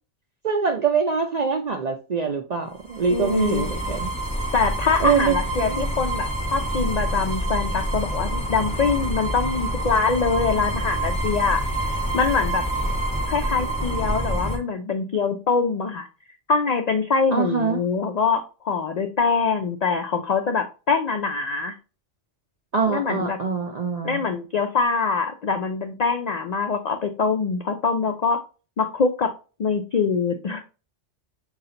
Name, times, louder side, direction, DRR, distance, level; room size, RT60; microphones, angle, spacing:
voice 1, 0.4-4.1 5.0-5.9 17.3-17.8 22.7-24.2, right 6 dB, 55° right, 3 dB, 0.4 m, -24 dB
sound 1, 2.8-14.6, right 1 dB, 5° left, 0.7 m, -27 dB
voice 2, 3.1-3.9 4.5-11.6 12.1-12.6 13.3-16.1 16.5-21.8 22.9-23.4 24.0-28.4 28.8-29.3 29.6-30.6, left 5 dB, 90° left, 6 dB, 0.3 m, -24 dB
5.6 x 2.4 x 3.7 m, 0.34 s
omnidirectional pair, 1.2 m